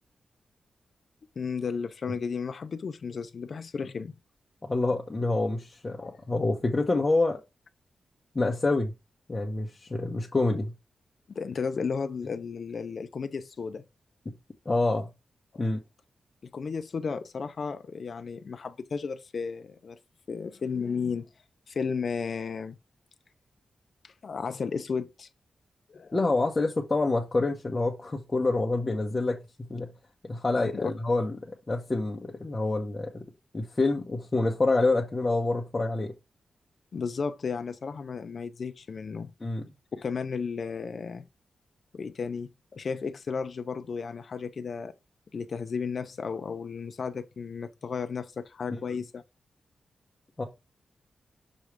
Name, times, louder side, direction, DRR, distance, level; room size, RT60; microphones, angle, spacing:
voice 1, 1.4-4.1 6.0-6.2 11.3-13.8 15.6-15.7 16.4-20.0 20.3-21.3 21.7-22.8 24.0-25.3 25.9-26.1 30.6-30.9 36.9-39.3 39.9-41.3 41.9-44.9 45.3-49.2, left 5 dB, 55° left, 0.6 m, -34 dB
voice 2, 4.6-7.4 8.3-8.9 9.3-10.7 14.3-14.4 14.6-15.1 15.6-15.8 26.1-29.9 30.2-33.2 33.5-36.1 39.4-39.7 48.7-49.0 50.4-50.5, left 2 dB, 25° left, 1.0 m, -27 dB
6.3 x 3.2 x 4.9 m
wide cardioid pair, 110°, 0 cm